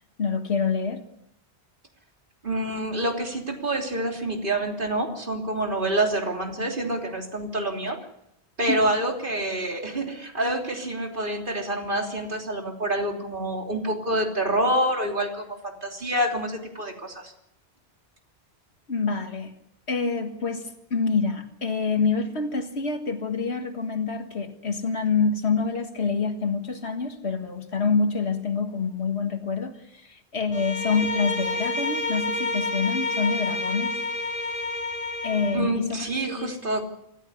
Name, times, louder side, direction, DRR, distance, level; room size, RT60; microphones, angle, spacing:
voice 1, 0.2-1.0 7.9-8.0 8.7-8.8 18.9-19.5 19.9-34.0 35.2-36.6, left 4 dB, 75° left, 2.0 m, -27 dB
voice 2, 2.4-8.0 8.6-17.3 35.5-36.9, right 1 dB, 50° right, 3.5 m, -27 dB
Bowed string instrument, 30.5-35.7, left 2 dB, 35° left, 2.4 m, -29 dB
26.0 x 14.0 x 9.7 m
omnidirectional pair, 1.1 m